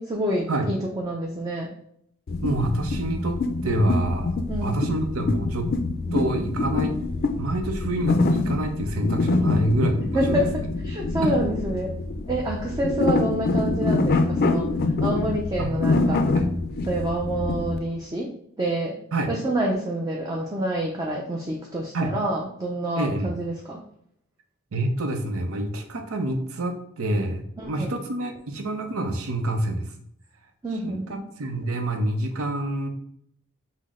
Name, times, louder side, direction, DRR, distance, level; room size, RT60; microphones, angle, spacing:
voice 1, 0.0-1.7 4.5-4.8 9.4-9.7 10.1-10.5 10.8-11.9 12.3-14.7 15.0-16.2 16.9-18.3 18.6-19.0 19.3-23.8 27.6-27.9 30.6-31.2, right 1 dB, 15° right, -2 dB, 0.5 m, -27 dB
sound 1, 2.3-17.8, left 3 dB, 45° left, 0.4 m, -25 dB
voice 2, 2.4-4.3 4.6-5.7 6.1-7.0 7.4-10.4 11.2-11.3 15.6-15.7 16.3-16.5 19.1-19.3 21.9-22.1 23.0-23.3 24.7-29.9 30.7-32.9, right 1 dB, 90° right, 6 dB, 0.7 m, -27 dB
5.8 x 2.1 x 3.6 m, 0.69 s
head